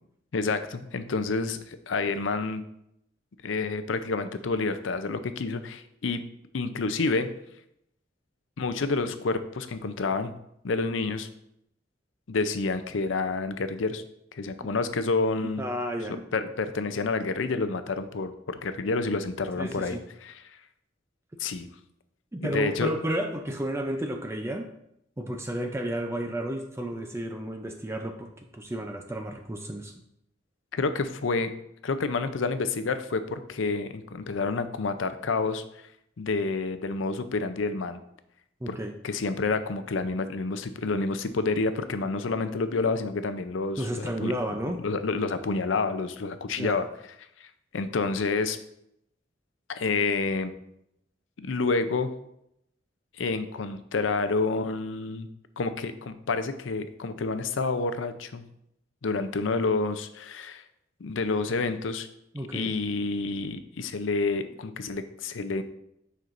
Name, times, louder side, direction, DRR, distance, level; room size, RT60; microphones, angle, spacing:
voice 1, 0.3-2.6 3.4-6.2 6.5-7.3 8.6-10.3 10.6-11.3 12.3-14.0 14.3-15.6 16.3-20.6 21.4-21.7 22.4-22.9 30.7-31.5 31.8-35.6 36.2-38.0 38.7-38.8 39.0-44.3 44.6-46.9 47.4-48.6 49.7-50.5 51.4-52.1 53.2-55.3 55.6-58.4 59.0-60.6 61.0-62.1 62.5-65.6, left 3 dB, 75° left, 10 dB, 0.6 m, -29 dB
voice 2, 15.6-16.2 19.6-20.0 22.3-24.7 25.2-29.9 38.6-38.9 43.8-44.8 46.6-46.8 62.3-62.7, right 1 dB, 15° right, 4 dB, 0.5 m, -32 dB
9.2 x 5.6 x 2.6 m, 0.78 s
head